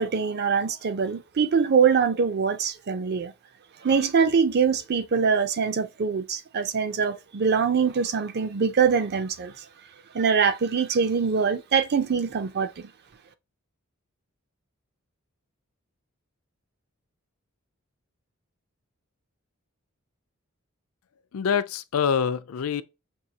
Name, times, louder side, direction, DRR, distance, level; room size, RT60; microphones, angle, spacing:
voice 1, 0.0-3.3 3.8-9.6 10.1-12.9, right 6 dB, 50° right, 0.5 m, -23 dB
voice 2, 21.3-22.8, left 7 dB, 75° left, 0.4 m, -25 dB
5.5 x 2.7 x 2.8 m
head